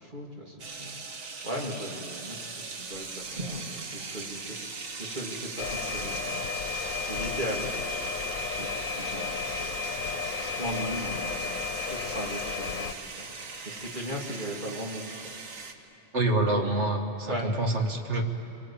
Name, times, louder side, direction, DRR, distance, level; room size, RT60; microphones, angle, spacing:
voice 1, 0.0-7.7 8.0-11.6 11.9-15.1 17.3-17.6 18.1-18.2, equal, 40° right, -2 dB, 3.0 m, -38 dB
sound 1, 0.6-15.7, right 4 dB, 80° right, 1.9 m, -40 dB
sound 2, 5.6-12.9, left 5 dB, 90° left, 1.3 m, -33 dB
voice 2, 16.1-18.2, right 2 dB, 60° right, 3 dB, 2.1 m, -26 dB
26.0 x 23.5 x 8.8 m, 2.8 s
omnidirectional pair, 1.4 m